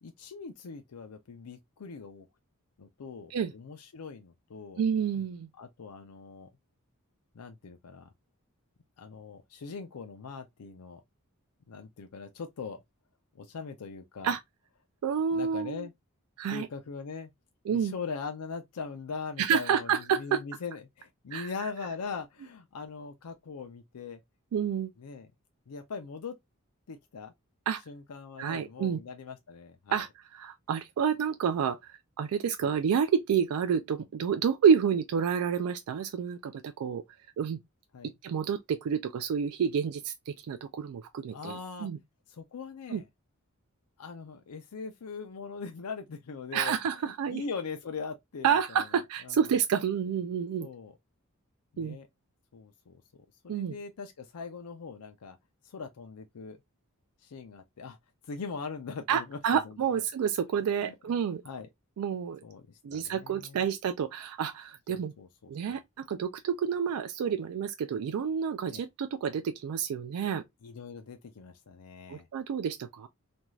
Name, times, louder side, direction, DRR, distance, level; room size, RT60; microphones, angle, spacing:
voice 1, 0.0-2.3 2.8-4.9 5.6-6.5 7.3-8.1 9.0-11.0 11.7-12.8 13.3-14.3 15.3-15.9 16.5-17.3 17.7-24.2 25.0-25.3 25.7-26.3 26.9-27.3 27.9-30.1 32.6-32.7 37.9-38.1 41.3-41.9 42.3-43.1 44.0-49.5 50.6-51.0 51.7-52.1 52.5-55.4 55.6-56.6 57.2-58.0 58.2-60.0 60.8-61.2 61.4-61.7 62.4-63.6 64.9-65.3 65.7-65.8 68.7-68.8 70.6-72.3, left 5 dB, 90° left, 0.5 m, -41 dB
voice 2, 4.8-5.5 14.2-14.4 15.0-15.9 16.4-16.7 17.7-17.9 19.4-20.4 21.3-21.5 24.5-24.9 27.7-27.8 28.4-29.0 29.9-31.9 32.2-37.0 37.4-37.6 38.2-42.0 42.9-43.0 46.5-47.4 48.4-50.7 51.8-52.0 53.5-53.7 59.1-61.4 62.0-62.4 62.8-65.1 65.5-70.4 72.1-73.1, right 7 dB, 75° right, 0.3 m, -29 dB
2.6 x 2.3 x 3.0 m
head